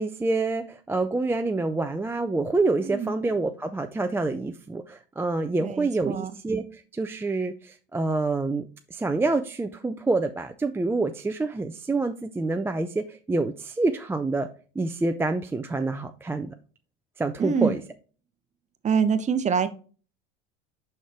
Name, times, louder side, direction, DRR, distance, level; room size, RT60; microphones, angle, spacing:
voice 1, 0.0-14.5 14.8-16.5 17.2-17.8, right 3 dB, 10° right, 6 dB, 0.4 m, -27 dB
voice 2, 2.8-3.1 5.6-6.3 17.4-17.8 18.8-19.7, right 6 dB, 25° right, 11 dB, 0.9 m, -25 dB
6.2 x 5.7 x 3.4 m, 0.38 s
hypercardioid pair, 95°, 29 cm